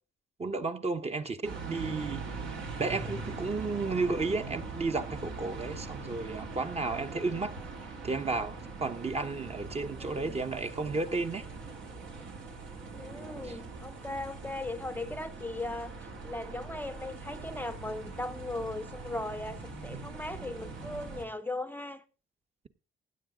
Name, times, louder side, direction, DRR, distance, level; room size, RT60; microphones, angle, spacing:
voice 1, 0.4-2.3 2.8-7.6 8.0-11.4 13.4-13.6, right 3 dB, 30° right, 1.1 m, -33 dB
sound 1, 1.4-21.2, right 4 dB, 75° right, 3.4 m, -42 dB
voice 2, 10.0-10.4 12.9-15.9 16.2-22.0, left 2 dB, 10° left, 0.7 m, -38 dB
16.5 x 9.4 x 3.8 m
cardioid pair, 90°, 20 cm